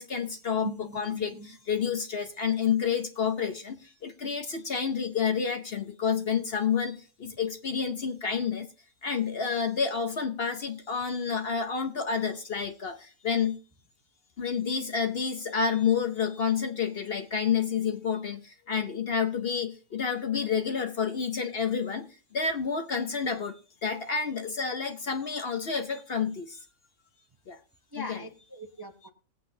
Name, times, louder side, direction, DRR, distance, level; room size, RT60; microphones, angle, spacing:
voice 1, 0.0-8.7 9.0-13.6 14.4-22.1 22.3-26.6 27.5-27.6 28.0-28.2, left 6 dB, 50° left, 0.9 m, -29 dB
voice 2, 0.6-1.5 27.9-29.1, right 1 dB, 20° right, 0.7 m, -41 dB
20.0 x 8.4 x 2.7 m
omnidirectional pair, 1.5 m